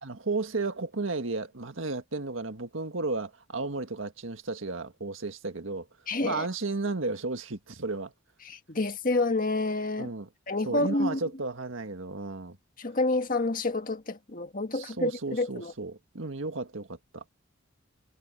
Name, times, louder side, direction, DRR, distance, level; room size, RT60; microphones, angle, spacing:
voice 1, 0.0-5.9 6.2-8.1 10.0-10.3 10.6-12.6 14.7-17.4, right 3 dB, 85° right, 1.7 m, -33 dB
voice 2, 6.1-6.5 8.4-10.1 10.5-11.2 12.8-15.7, left 2 dB, 45° left, 1.7 m, -28 dB
head